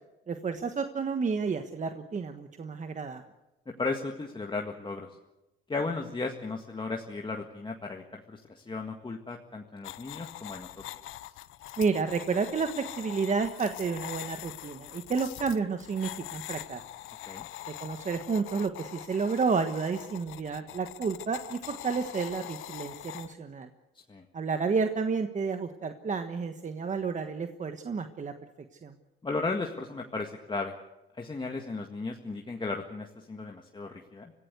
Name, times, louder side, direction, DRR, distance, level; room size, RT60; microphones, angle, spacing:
voice 1, 0.3-3.2 11.8-16.8 17.8-23.7 24.3-28.3 28.8-28.9, right 5 dB, 40° right, 7 dB, 1.4 m, -31 dB
voice 2, 3.8-5.1 5.7-10.7 17.3-17.5 24.1-24.3 29.2-30.8 31.2-34.3, left 3 dB, 25° left, 2 dB, 1.8 m, -35 dB
sound 1, 9.8-23.3, left 15 dB, 90° left, 0.8 m, -43 dB
25.0 x 16.0 x 8.2 m, 1.0 s
cardioid pair, 90°, 20 cm